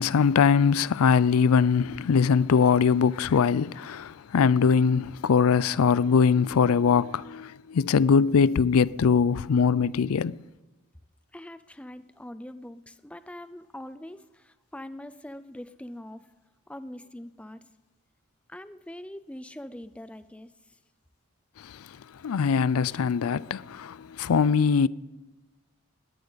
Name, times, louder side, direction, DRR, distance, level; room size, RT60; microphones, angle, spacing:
voice 1, 0.0-10.4 21.6-21.9 22.2-24.9, left 6 dB, 90° left, 0.4 m, -22 dB
voice 2, 11.3-16.3 16.7-17.7 18.5-20.5, left 1 dB, 5° left, 0.4 m, -43 dB
20.5 x 17.5 x 4.0 m
head